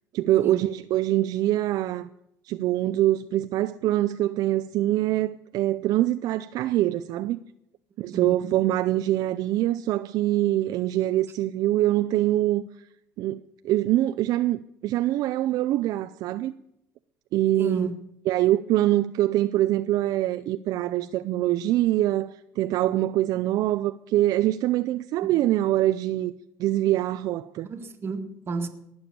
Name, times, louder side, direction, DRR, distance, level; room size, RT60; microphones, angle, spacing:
voice 1, 0.1-2.1 2.4-7.4 8.0-12.6 13.2-16.5 17.3-17.9 18.3-26.3 26.6-27.7, right 14 dB, 65° right, 0.5 m, -24 dB
voice 2, 8.0-8.3 17.6-18.0 25.2-25.3 27.6-28.7, right 4 dB, 35° right, 2.0 m, -32 dB
19.0 x 7.1 x 8.5 m
supercardioid pair, 95°, 7 cm